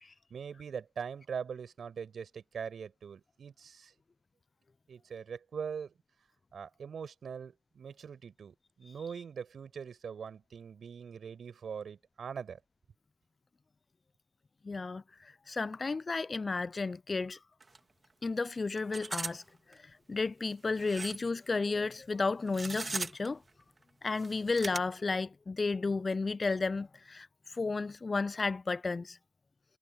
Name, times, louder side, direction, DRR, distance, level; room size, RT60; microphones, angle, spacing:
voice 1, 0.3-3.9 4.9-5.9 6.5-12.6, right 6 dB, 50° right, 7.4 m, -42 dB
voice 2, 14.6-17.4 18.2-19.4 19.7-23.4 24.0-29.2, left 3 dB, 30° left, 0.5 m, -33 dB
sound 1, 17.6-17.8 18.0-18.1 18.8-19.4 19.7-19.8 20.8-21.3 22.5-23.3 24.1-24.8, right 3 dB, 30° right, 2.4 m, -38 dB
supercardioid pair, 60°, 0 cm